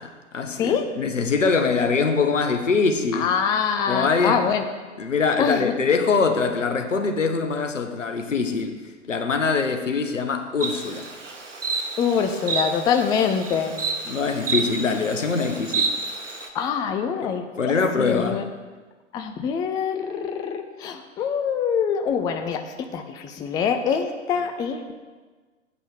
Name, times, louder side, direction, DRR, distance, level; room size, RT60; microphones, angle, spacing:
voice 1, 0.0-3.3 3.9-4.5 5.0-8.8 9.1-11.1 14.0-15.9 17.2-18.5, left 4 dB, 80° left, 6 dB, 1.1 m, -23 dB
voice 2, 3.1-4.6 5.4-5.7 12.0-13.7 16.5-18.4 19.1-22.6 22.9-24.9, left 7 dB, 10° left, 6 dB, 0.4 m, -24 dB
Insect, 10.6-16.5, right 4 dB, 80° right, 1.2 m, -30 dB
8.2 x 5.5 x 7.4 m, 1.4 s
figure-of-eight pair, 100°, 37 cm